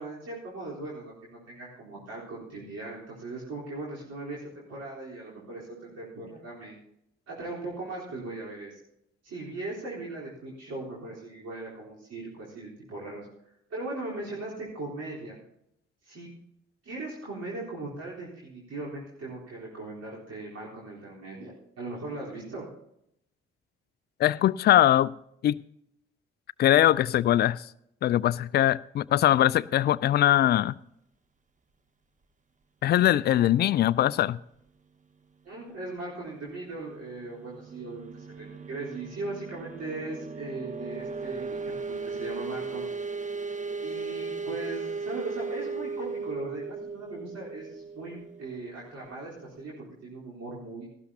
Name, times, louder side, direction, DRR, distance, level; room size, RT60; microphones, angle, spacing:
voice 1, 0.0-6.8 7.3-8.8 9.2-13.3 13.7-15.4 16.0-16.3 16.8-22.7 35.4-42.8 43.8-50.9, right 2 dB, 50° right, 4.0 m, -39 dB
voice 2, 24.2-25.1 25.4-25.6 26.6-27.6 28.0-30.7 32.8-34.4, left 12 dB, 30° left, 0.4 m, -22 dB
sound 1, 36.7-49.2, right 4 dB, 25° right, 0.9 m, -37 dB
18.0 x 13.5 x 2.8 m
figure-of-eight pair, 40°, 33 cm